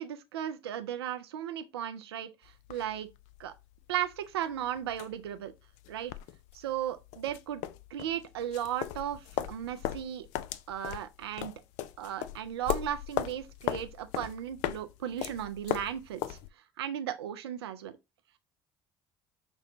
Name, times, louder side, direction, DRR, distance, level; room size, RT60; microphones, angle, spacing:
voice 1, 0.0-3.1 3.4-3.5 3.9-5.5 5.9-6.1 6.5-7.6 7.9-10.3 10.7-11.5 12.0-16.4 16.8-17.9, right 10 dB, 90° right, 0.4 m, -36 dB
sound 1, 2.4-16.5, left 12 dB, 70° left, 0.4 m, -38 dB
6.0 x 2.2 x 3.6 m
hypercardioid pair, 60°, 13 cm